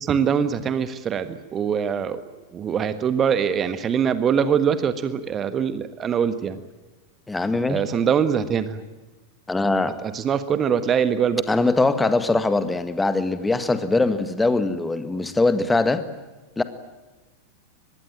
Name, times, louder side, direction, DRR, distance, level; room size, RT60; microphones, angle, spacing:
voice 1, 0.0-2.2 2.5-6.6 7.7-8.8 10.0-11.4, right 7 dB, 25° right, 12 dB, 1.4 m, -23 dB
voice 2, 7.3-7.8 9.5-10.0 11.5-16.0 16.6-16.7, left 3 dB, 10° left, 11 dB, 1.7 m, -22 dB
24.5 x 21.0 x 9.1 m, 1.2 s
figure-of-eight pair, 90°, 0 cm